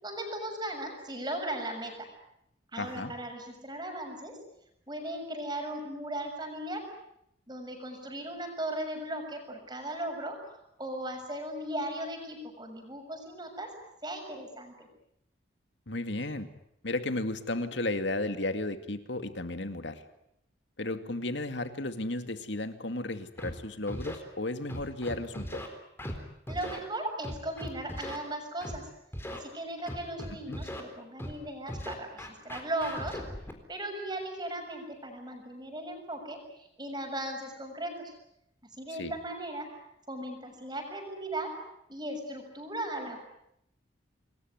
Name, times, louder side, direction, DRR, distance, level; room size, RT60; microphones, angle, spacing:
voice 1, 0.0-2.1 2.7-4.4 4.9-6.9 7.5-10.5 10.8-13.7 14.0-14.9 26.5-28.9 29.3-33.2 33.7-38.1 38.8-39.7 40.1-41.6 41.9-43.2, right 1 dB, 20° right, 4 dB, 6.7 m, -37 dB
voice 2, 2.8-3.1 15.9-16.5 16.8-20.0 20.8-25.6 30.5-30.6 39.0-39.1, left 2 dB, 65° left, 9 dB, 2.3 m, -34 dB
Scratching (performance technique), 23.4-23.5 23.9-24.2 24.7-25.7 26.0-26.2 26.5-26.8 27.2-28.2 28.6-28.8 29.1-29.4 29.9-30.8 31.2-31.4 31.7-33.5, equal, 10° left, 4.0 m, -38 dB
28.5 x 21.0 x 9.6 m, 0.79 s
head